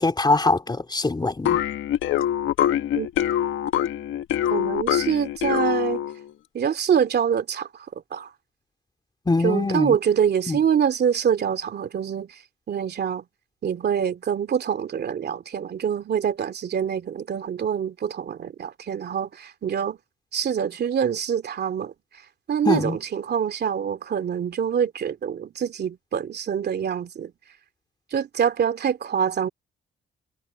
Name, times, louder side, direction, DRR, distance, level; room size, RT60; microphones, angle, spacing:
voice 1, 0.0-1.6 9.3-10.0 10.5-10.6 22.7-23.0, left 3 dB, 20° left, 3.8 m, -22 dB
sound 1, 1.5-6.2, left 11 dB, 80° left, 1.4 m, -24 dB
voice 2, 4.5-6.0 6.5-8.3 9.4-12.4 12.7-13.2 13.6-20.0 20.3-21.9 22.5-27.3 28.1-29.5, right 8 dB, 55° right, 2.5 m, -25 dB
cardioid pair, 90°, 20 cm